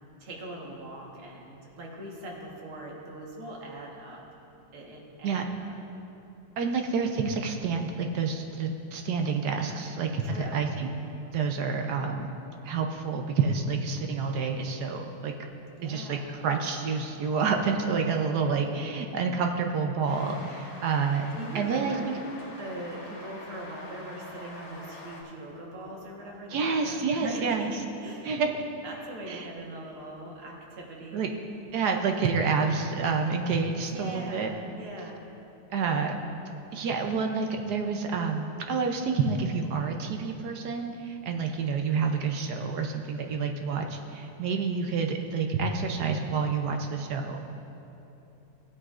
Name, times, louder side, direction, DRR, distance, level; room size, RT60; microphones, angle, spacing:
voice 1, 0.2-4.2 4.7-5.7 10.2-10.7 15.8-16.4 21.3-22.2 22.6-28.4 28.8-31.2 33.9-35.2 35.9-36.1, right 1 dB, 85° right, -2 dB, 2.3 m, -41 dB
voice 2, 6.6-10.9 11.3-12.3 12.6-15.3 15.8-21.3 21.5-22.1 26.5-27.7 28.2-28.5 29.3-29.5 31.1-31.3 31.7-34.5 35.7-36.2 36.7-47.4, right 5 dB, 70° right, 3 dB, 1.0 m, -28 dB
sound 1, 20.0-25.2, left 2 dB, 50° left, 1.7 m, -45 dB
17.0 x 8.9 x 2.5 m, 2.9 s
omnidirectional pair, 2.3 m